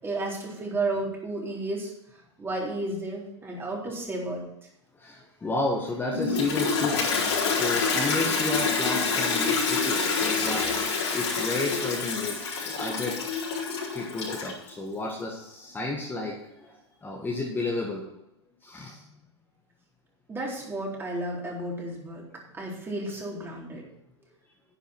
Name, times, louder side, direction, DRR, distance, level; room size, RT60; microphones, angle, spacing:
voice 1, 0.0-1.9 2.4-4.5 20.3-22.2 22.5-23.8, right 2 dB, 15° right, -2 dB, 3.8 m, -32 dB
voice 2, 5.0-7.1 7.5-10.7 11.1-13.2 13.9-16.7 17.0-18.0 18.6-19.0, left 2 dB, 15° left, -1 dB, 1.8 m, -32 dB
Toilet flush, 6.1-14.7, left 5 dB, 65° left, 4.4 m, -27 dB
10.0 x 10.0 x 4.5 m, 0.85 s
figure-of-eight pair, 100°, 15 cm